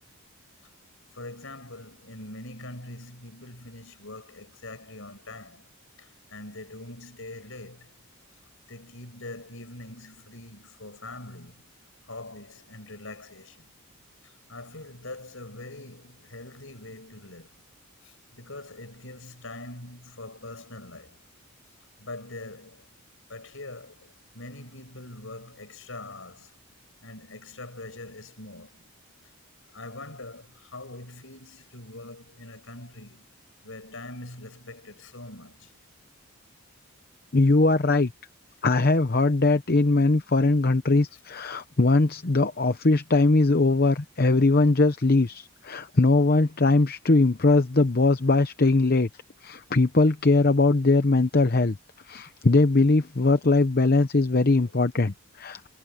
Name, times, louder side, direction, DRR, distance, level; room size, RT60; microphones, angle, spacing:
voice 1, 1.1-5.7 6.0-8.0 8.7-11.6 12.1-13.7 14.2-17.6 18.0-21.2 22.0-22.9 23.3-26.5 27.0-28.9 29.7-33.3 33.6-35.7 54.6-54.9 55.5-55.7, left 2 dB, 65° left, 6.0 m, -43 dB
voice 2, 37.3-38.1 38.6-49.1 49.4-51.8 52.1-55.7, left 3 dB, 45° left, 0.8 m, -21 dB
head